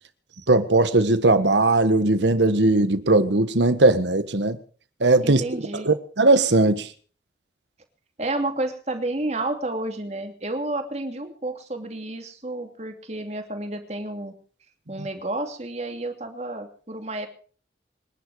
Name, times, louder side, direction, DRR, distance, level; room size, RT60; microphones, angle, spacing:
voice 1, 0.5-4.6 5.0-5.4 5.8-6.9, right 2 dB, 85° right, 1.5 m, -19 dB
voice 2, 5.2-5.9 8.2-14.3 14.9-17.3, right 2 dB, 40° right, 2.7 m, -30 dB
25.5 x 11.0 x 4.9 m
head